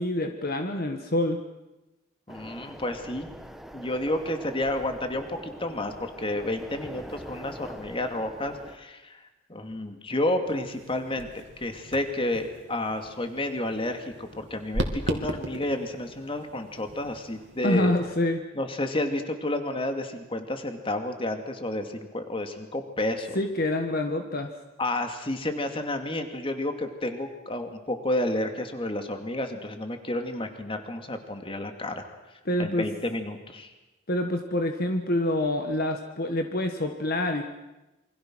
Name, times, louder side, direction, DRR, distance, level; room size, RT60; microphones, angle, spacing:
voice 1, 0.0-1.4 17.6-18.4 23.3-24.5 32.4-32.9 34.1-37.4, left 1 dB, 50° left, 5 dB, 1.6 m, -26 dB
voice 2, 2.3-3.3 3.7-9.2 9.5-17.9 18.5-23.4 24.8-32.0 32.6-33.7, left 1 dB, 30° left, 6 dB, 2.4 m, -31 dB
sound 1, 2.3-8.8, equal, ahead, 1.3 m, -43 dB
sound 2, 10.5-18.2, right 1 dB, 70° right, 2.8 m, -38 dB
27.5 x 24.5 x 6.3 m, 1.0 s
head